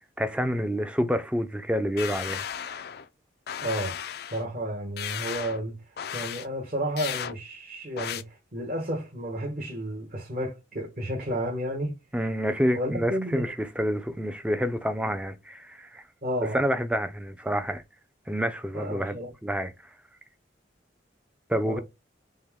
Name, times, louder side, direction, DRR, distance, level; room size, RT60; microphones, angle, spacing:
voice 1, 0.2-2.4 12.1-16.0 16.4-17.8 18.3-19.7 21.5-21.8, equal, 5° right, 0.4 m, -28 dB
sound 1, 2.0-3.1 3.5-4.4 5.0-5.6 6.0-6.5 7.0-7.3 8.0-8.2, left 9 dB, 55° left, 0.4 m, -35 dB
voice 2, 3.6-4.0 4.3-5.8 6.1-11.9 12.7-13.4 16.2-16.6 18.7-19.3 21.6-21.8, equal, 50° right, 1.2 m, -32 dB
5.3 x 2.2 x 3.5 m
head